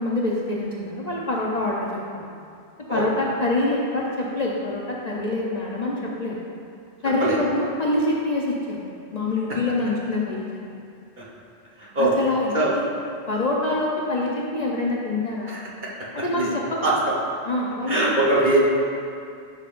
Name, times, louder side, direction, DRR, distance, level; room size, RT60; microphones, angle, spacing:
voice 1, 0.0-2.3 2.9-6.4 7.0-8.8 9.1-10.5 12.0-12.9 13.3-15.6 16.1-17.0 17.5-18.2, left 2 dB, 40° left, -4 dB, 0.7 m, -25 dB
voice 2, 11.8-12.1 12.5-12.8 15.5-15.6 16.3-16.5 16.8-16.9 17.9-18.6, right 2 dB, 45° right, -6 dB, 1.3 m, -21 dB
11.5 x 5.7 x 2.5 m, 2.4 s
omnidirectional pair, 1.2 m